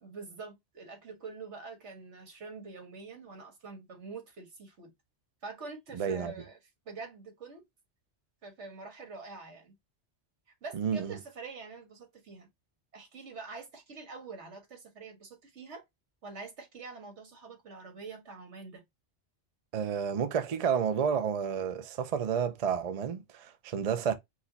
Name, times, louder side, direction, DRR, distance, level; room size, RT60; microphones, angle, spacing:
voice 1, 0.0-4.9 5.4-6.6 6.9-7.6 8.4-9.8 10.6-12.5 12.9-15.8 16.2-18.8, right 4 dB, 80° right, 1.7 m, -45 dB
voice 2, 5.9-6.3 10.7-11.2 19.7-24.1, right 7 dB, 45° right, 0.5 m, -30 dB
4.9 x 2.2 x 3.9 m
omnidirectional pair, 1.2 m